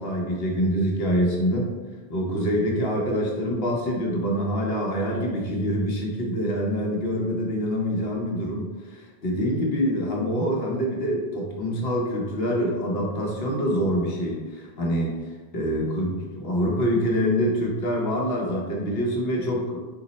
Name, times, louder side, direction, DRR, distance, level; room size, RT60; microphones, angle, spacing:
voice 1, 0.0-1.7 2.1-15.2 15.5-19.8, equal, 70° left, -1 dB, 1.1 m, -25 dB
4.5 x 2.0 x 3.9 m, 1.3 s
omnidirectional pair, 1.0 m